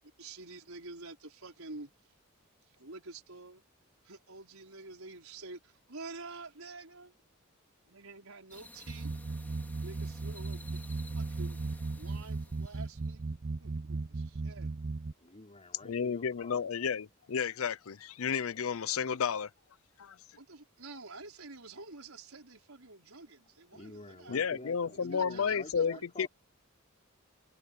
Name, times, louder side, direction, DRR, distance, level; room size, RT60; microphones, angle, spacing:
voice 1, 0.2-1.9 2.8-3.6 4.0-7.1 7.9-9.1 9.8-10.8 11.1-11.6 12.0-13.2 13.6-14.7 20.4-24.5 24.9-26.0, right 3 dB, 80° right, 4.7 m, -48 dB
sound 1, 8.5-13.1, left 2 dB, 10° left, 2.7 m, -54 dB
sound 2, 8.9-15.1, right 3 dB, 45° right, 0.6 m, -37 dB
voice 2, 15.2-16.6 23.7-26.3, left 2 dB, 30° left, 4.5 m, -49 dB
voice 3, 15.8-19.5 20.0-20.2 24.3-26.3, left 6 dB, 75° left, 0.5 m, -32 dB
head